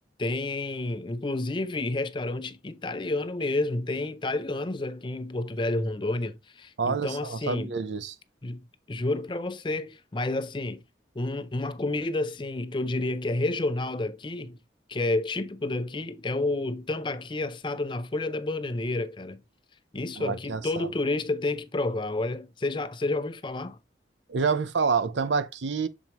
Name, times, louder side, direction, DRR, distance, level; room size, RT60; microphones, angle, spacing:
voice 1, 0.2-7.7 8.4-10.8 11.2-14.6 14.9-19.4 19.9-23.8, left 2 dB, 25° left, 0.5 m, -30 dB
voice 2, 6.8-8.2 20.2-20.9 24.3-25.9, right 5 dB, 90° right, 0.7 m, -28 dB
7.3 x 4.4 x 2.9 m
head